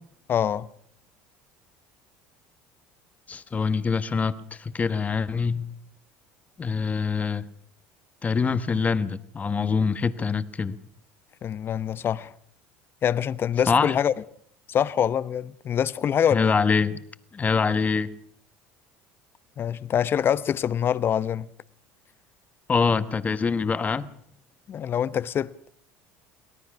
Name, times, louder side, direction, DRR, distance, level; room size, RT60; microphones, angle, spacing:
voice 1, 0.3-0.7 11.4-12.3 13.0-14.1 14.7-16.6 19.6-21.5 24.7-25.5, left 9 dB, 40° left, 0.9 m, -25 dB
voice 2, 3.3-4.3 4.6-5.7 6.6-7.4 8.2-10.8 13.7-13.9 16.3-17.0 17.3-18.1 22.7-24.1, left 5 dB, 25° left, 1.3 m, -24 dB
23.5 x 17.5 x 6.2 m
supercardioid pair, 85°, 6 cm